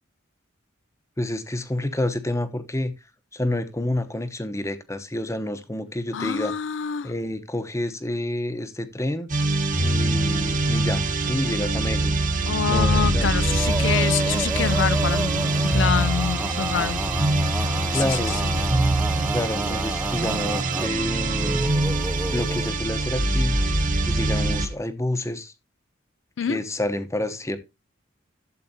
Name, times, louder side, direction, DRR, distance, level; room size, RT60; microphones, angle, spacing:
voice 1, 1.2-2.9 3.3-6.5 7.0-9.3 9.8-12.2 12.7-13.3 17.9-18.4 19.3-21.7 22.3-23.6 24.1-25.5 26.4-27.6, left 1 dB, 15° left, 0.9 m, -28 dB
voice 2, 6.1-7.1 12.5-17.0 17.9-18.3 26.4-26.6, left 7 dB, 65° left, 0.4 m, -26 dB
sound 1, 9.3-24.7, right 2 dB, 40° right, 1.4 m, -24 dB
Male singing, 12.9-22.7, right 1 dB, 10° right, 0.6 m, -31 dB
12.5 x 7.7 x 2.8 m
head